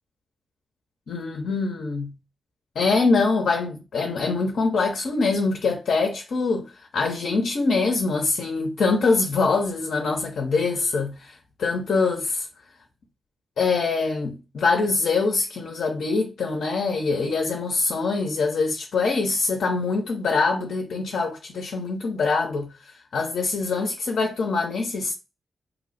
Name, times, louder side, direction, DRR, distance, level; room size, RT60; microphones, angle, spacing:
voice 1, 1.1-2.1 2.8-12.5 13.6-25.1, left 4 dB, 70° left, 0.6 m, -24 dB
2.8 x 2.0 x 4.0 m
supercardioid pair, 40°, 0 cm